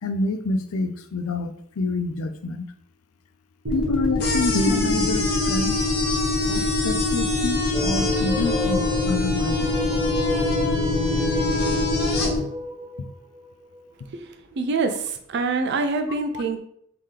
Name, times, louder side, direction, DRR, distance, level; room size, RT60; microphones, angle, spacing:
voice 1, 0.0-2.6 3.7-5.8 6.5-9.7 16.3-16.4, left 3 dB, 80° left, 9 dB, 0.4 m, -27 dB
sound 1, 3.6-12.4, left 2 dB, 90° right, 1.1 m, -25 dB
sound 2, 4.2-12.3, left 2 dB, 50° left, 0.9 m, -29 dB
sound 3, 7.7-13.9, left 1 dB, 10° right, 0.6 m, -29 dB
voice 2, 14.2-16.6, right 4 dB, 55° right, 7 dB, 0.4 m, -25 dB
3.7 x 2.8 x 3.3 m, 0.69 s
head